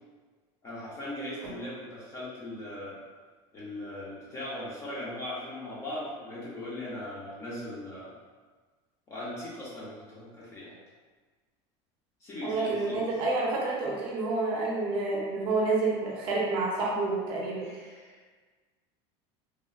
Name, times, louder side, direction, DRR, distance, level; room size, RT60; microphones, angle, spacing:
voice 1, 0.6-3.0 3.5-8.1 9.1-10.8 12.2-13.1 17.6-18.2, left 1 dB, 20° left, -6 dB, 0.5 m, -39 dB
voice 2, 12.4-17.6, right 3 dB, 35° right, -4 dB, 0.5 m, -29 dB
3.0 x 2.0 x 2.4 m, 1.4 s
cardioid pair, 175°, 14 cm